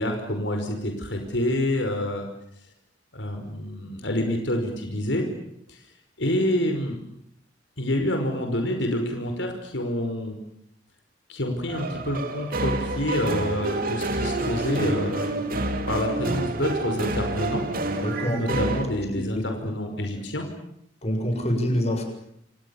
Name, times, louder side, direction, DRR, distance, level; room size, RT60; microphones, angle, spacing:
voice 1, 0.0-2.3 3.1-5.3 5.7-5.8 6.2-7.0 7.8-10.4 11.3-17.7 18.3-20.5, left 1 dB, 80° left, 4 dB, 5.4 m, -27 dB
sound 1, 11.7-18.8, right 2 dB, 50° right, 3.2 m, -28 dB
voice 2, 18.0-18.4 19.1-19.2 21.0-22.0, equal, 35° left, 4 dB, 7.5 m, -25 dB
29.0 x 28.0 x 7.3 m, 0.76 s
head